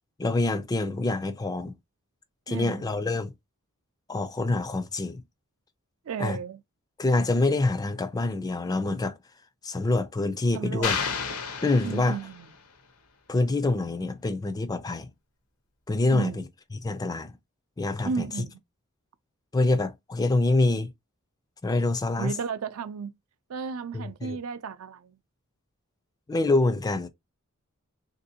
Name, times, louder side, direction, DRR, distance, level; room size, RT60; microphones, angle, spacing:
voice 1, 0.2-1.7 2.5-3.3 4.1-5.2 6.2-6.4 7.0-9.2 9.6-11.0 11.6-12.2 13.3-15.1 15.9-16.3 16.8-17.3 17.8-18.2 19.5-20.9 21.6-22.3 23.9-24.4 26.3-27.1, left 2 dB, 15° left, 0.3 m, -26 dB
voice 2, 2.5-3.0 6.0-6.6 10.5-11.0 11.8-12.5 16.1-16.5 18.0-18.6 22.2-23.1 23.5-25.2, right 6 dB, 70° right, 0.4 m, -34 dB
sound 1, 10.8-12.6, left 6 dB, 75° left, 0.7 m, -31 dB
3.4 x 2.6 x 2.7 m
head